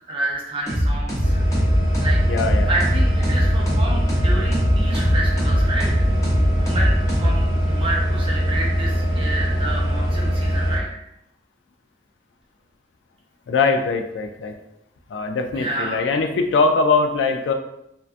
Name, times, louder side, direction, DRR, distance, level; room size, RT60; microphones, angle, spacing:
voice 1, 0.0-1.4 2.0-2.2 2.7-6.0 6.5-6.9 7.2-10.9 15.5-16.0, right 2 dB, 30° right, -4 dB, 0.4 m, -29 dB
sound 1, 0.7-7.8, equal, 20° left, 0.6 m, -22 dB
sound 2, 1.2-10.8, equal, 50° left, 0.9 m, -22 dB
voice 2, 2.3-2.7 13.5-14.5 15.1-17.5, left 4 dB, 80° left, 5 dB, 0.3 m, -21 dB
2.5 x 2.2 x 2.4 m, 0.81 s
head